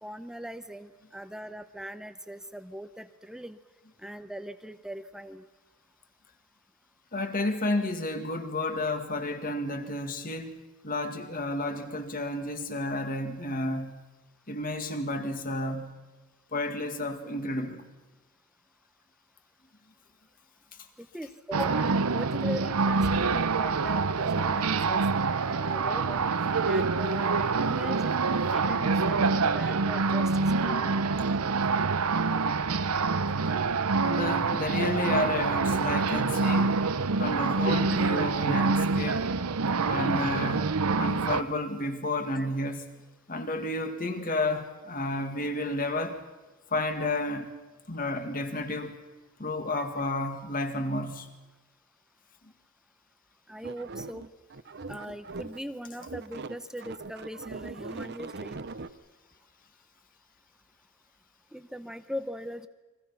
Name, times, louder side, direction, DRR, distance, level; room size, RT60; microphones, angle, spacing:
voice 1, 0.0-3.6 4.0-5.4 21.0-25.0 25.5-26.2 26.7-28.1 28.5-30.3 30.6-31.1 37.9-38.0 38.5-38.6 42.3-42.5 49.8-49.9 53.5-54.3 54.9-58.6 61.5-62.7, equal, 5° right, 0.7 m, -40 dB
voice 2, 7.1-14.0 14.5-15.9 16.5-17.8 34.0-36.8 37.2-39.2 39.8-42.8 43.3-46.2 46.7-47.5 47.9-48.9 49.4-51.3, left 2 dB, 40° left, 2.1 m, -31 dB
sound 1, 21.5-41.4, right 4 dB, 90° right, 0.8 m, -26 dB
sound 2, 53.6-55.7 56.0-58.9, right 3 dB, 50° right, 0.8 m, -40 dB
30.0 x 23.0 x 5.8 m
head